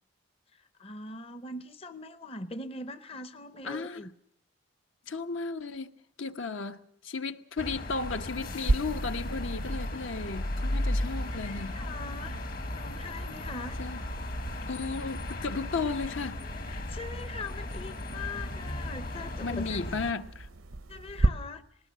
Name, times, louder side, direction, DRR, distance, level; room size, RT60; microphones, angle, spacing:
voice 1, 0.5-4.1 11.2-12.4 12.8-13.8 16.6-19.8 20.9-21.6, left 3 dB, 30° left, 0.7 m, -42 dB
voice 2, 3.6-4.1 5.1-5.9 6.2-11.8 13.8-14.0 14.7-16.5 19.4-20.5, left 4 dB, 70° left, 1.0 m, -34 dB
sound 1, 7.6-20.1, left 1 dB, 45° left, 1.3 m, -35 dB
sound 2, 8.6-21.3, right 2 dB, 80° right, 0.8 m, -36 dB
20.0 x 18.5 x 7.5 m
head